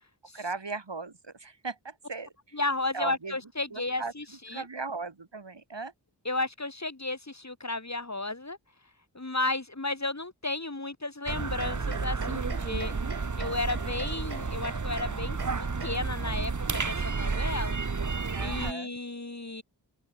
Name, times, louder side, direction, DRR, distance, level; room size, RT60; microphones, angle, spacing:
voice 1, 0.3-2.6 2.9-3.4 3.7-4.1 4.5-5.9 18.3-19.0, right 4 dB, 90° right, 4.8 m, -37 dB
voice 2, 2.5-4.6 6.2-8.6 9.1-12.9 13.4-15.4 15.8-17.8 18.4-19.6, left 2 dB, 40° left, 3.0 m, -33 dB
sound 1, 11.3-18.7, right 4 dB, 45° right, 1.2 m, -31 dB
sound 2, 11.3-17.8, right 4 dB, 65° right, 1.7 m, -45 dB
open air
wide cardioid pair, 40°, 42 cm